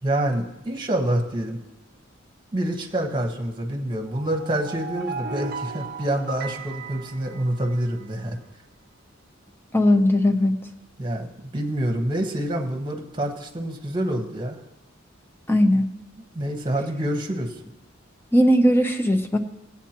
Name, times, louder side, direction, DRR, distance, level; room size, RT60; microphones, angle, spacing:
voice 1, 0.0-1.6 2.5-8.4 11.0-14.6 16.3-17.5, right 1 dB, 25° right, 2 dB, 1.2 m, -27 dB
sound 1, 4.1-8.0, right 4 dB, 50° right, 0.5 m, -36 dB
voice 2, 9.7-10.5 15.5-15.9 18.3-19.4, equal, 10° left, 6 dB, 0.6 m, -18 dB
18.0 x 8.3 x 2.9 m, 0.94 s
head